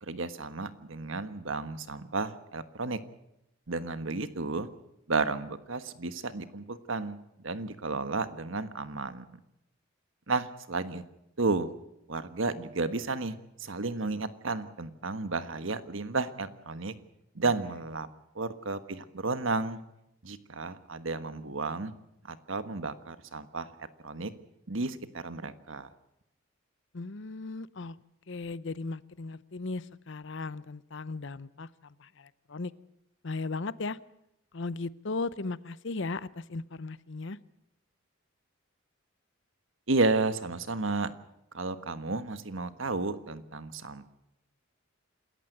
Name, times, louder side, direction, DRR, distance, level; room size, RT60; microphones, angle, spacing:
voice 1, 0.0-3.0 3.7-4.7 5.1-7.2 7.4-9.3 10.3-11.0 11.4-11.7 12.1-16.9 17.3-18.1 18.3-19.8 20.2-21.9 22.3-24.3 24.7-25.9 39.9-41.1 41.5-44.1, right 3 dB, 70° right, 11 dB, 1.4 m, -32 dB
voice 2, 26.9-28.0 28.3-32.7 33.2-34.0 34.5-37.4, left 3 dB, 60° left, 18 dB, 0.7 m, -37 dB
27.5 x 14.5 x 7.9 m, 0.82 s
head